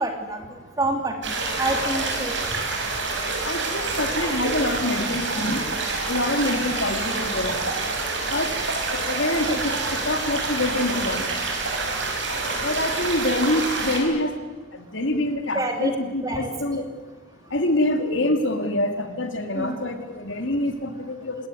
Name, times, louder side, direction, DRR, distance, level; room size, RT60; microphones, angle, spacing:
voice 1, 0.0-2.5 15.5-15.9 16.2-16.5 19.5-19.8, right 2 dB, 15° right, 4 dB, 3.1 m, -27 dB
sound 1, 1.2-14.0, right 3 dB, 60° right, 6.3 m, -27 dB
voice 2, 3.4-5.6 6.1-7.6 8.3-8.6 8.9-11.3 12.6-14.3 14.7-16.8 17.5-21.4, left 1 dB, 65° left, 6 dB, 2.9 m, -25 dB
27.5 x 19.5 x 9.4 m, 1.4 s
head